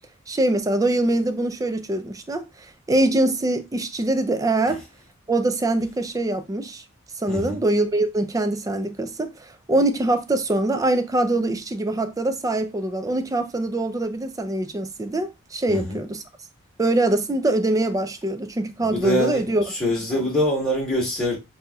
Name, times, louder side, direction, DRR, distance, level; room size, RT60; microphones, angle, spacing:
voice 1, 0.3-4.8 5.3-6.8 7.2-16.2 16.8-19.6, right 2 dB, 15° right, 0.4 m, -23 dB
voice 2, 18.9-21.4, left 1 dB, 5° left, 1.3 m, -24 dB
5.4 x 2.7 x 2.3 m
head